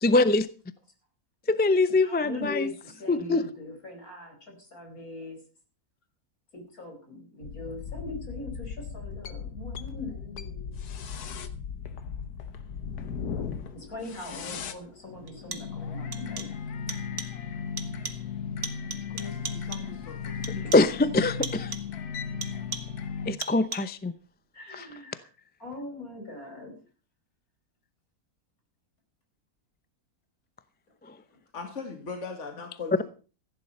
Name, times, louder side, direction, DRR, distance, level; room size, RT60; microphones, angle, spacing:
voice 1, 0.0-0.5 1.5-2.7 3.1-3.4 20.7-21.7 23.3-24.1, left 2 dB, 15° left, 14 dB, 0.3 m, -23 dB
voice 2, 2.0-5.4 6.5-10.8 13.7-16.5 20.5-20.7 24.5-25.3 25.6-26.7, left 2 dB, 70° left, 3 dB, 5.3 m, -41 dB
sound 1, 7.4-23.3, left 6 dB, 90° left, 1.6 m, -37 dB
sound 2, 14.2-14.3 15.3-15.8 16.1-16.6 16.9-17.4 17.8-18.3 18.6-20.0 20.4-21.0 21.4-22.0 22.4-23.1 23.4-24.0, right 5 dB, 55° right, 1.7 m, -39 dB
voice 3, 19.1-20.6 31.5-33.0, left 4 dB, 50° left, 5 dB, 2.2 m, -40 dB
15.5 x 10.0 x 5.4 m, 0.36 s
omnidirectional pair, 1.6 m